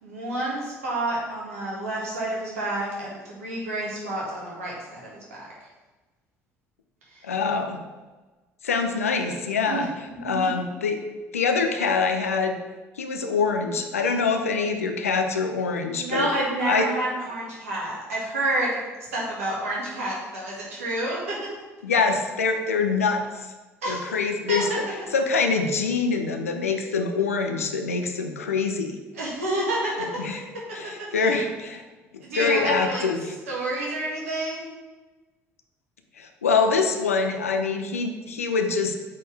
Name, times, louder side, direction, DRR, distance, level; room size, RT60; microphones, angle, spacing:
voice 1, 0.0-5.4 7.1-7.2 9.6-10.3 16.0-18.8 19.1-21.4 23.8-24.1 24.5-24.8 29.1-30.2 30.8-31.4 32.2-33.1 33.5-34.7, right 1 dB, 75° right, -4 dB, 1.8 m, -29 dB
voice 2, 7.2-7.8 8.6-9.9 10.2-11.0 11.3-12.6 13.0-16.3 16.6-16.9 21.8-23.5 23.9-24.8 25.1-29.0 30.0-30.4 30.7-31.8 32.3-33.3 36.2-39.0, left 4 dB, 80° left, 5 dB, 0.6 m, -24 dB
8.3 x 4.2 x 3.4 m, 1.2 s
figure-of-eight pair, 55°, 8 cm